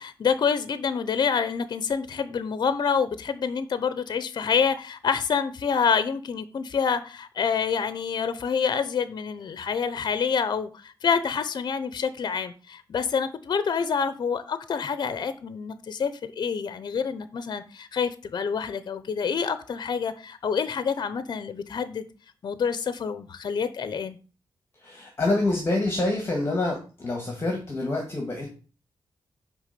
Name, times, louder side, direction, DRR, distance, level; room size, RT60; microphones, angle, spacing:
voice 1, 0.0-22.1 22.4-24.2, left 6 dB, 55° left, 13 dB, 0.7 m, -27 dB
voice 2, 24.8-28.5, left 2 dB, 30° left, 1 dB, 1.8 m, -27 dB
10.0 x 3.5 x 6.7 m, 0.35 s
wide cardioid pair, 175°, 9 cm